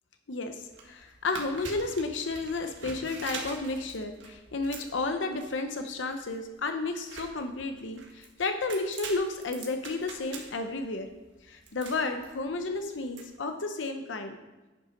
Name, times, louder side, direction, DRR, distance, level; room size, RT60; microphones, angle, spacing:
voice 1, 0.3-11.1 11.4-14.4, left 3 dB, 80° left, 6 dB, 0.7 m, -32 dB
sound 1, 0.6-13.2, right 4 dB, 75° right, 1.6 m, -45 dB
10.0 x 5.7 x 5.2 m, 1.2 s
head